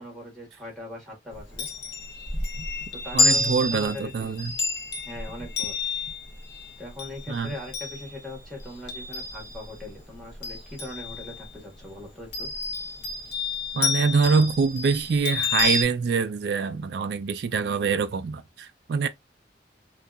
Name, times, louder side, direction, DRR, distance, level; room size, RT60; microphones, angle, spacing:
voice 1, 0.0-1.7 2.9-4.3 5.0-5.7 6.8-12.5, left 2 dB, ahead, 1.2 m, -40 dB
Chime, 1.3-9.8 10.2-11.5 12.3-15.8, left 3 dB, 65° left, 0.7 m, -29 dB
voice 2, 3.1-4.6 7.3-7.5 13.7-19.1, right 5 dB, 60° right, 0.3 m, -25 dB
2.7 x 2.3 x 2.3 m
head